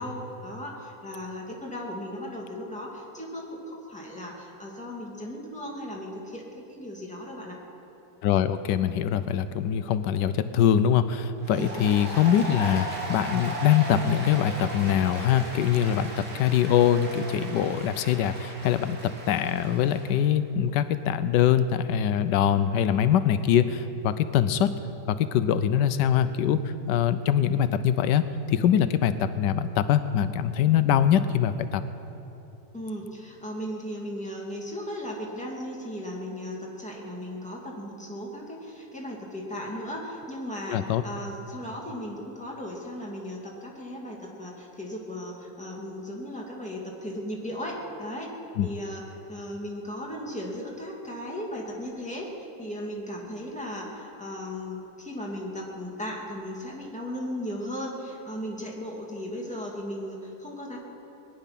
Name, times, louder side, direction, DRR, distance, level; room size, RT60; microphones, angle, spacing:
voice 1, 0.0-7.6 11.5-11.8 32.7-48.3 48.6-49.0 49.3-60.8, equal, 5° left, -2 dB, 2.3 m, -36 dB
voice 2, 8.2-19.0 19.3-24.7 25.1-31.8 40.7-41.0 48.6-48.7, left 9 dB, 85° left, 12 dB, 1.2 m, -23 dB
Applause, 11.4-20.1, right 1 dB, 75° right, 3.3 m, -37 dB
21.5 x 10.5 x 5.9 m, 3.0 s
omnidirectional pair, 1.8 m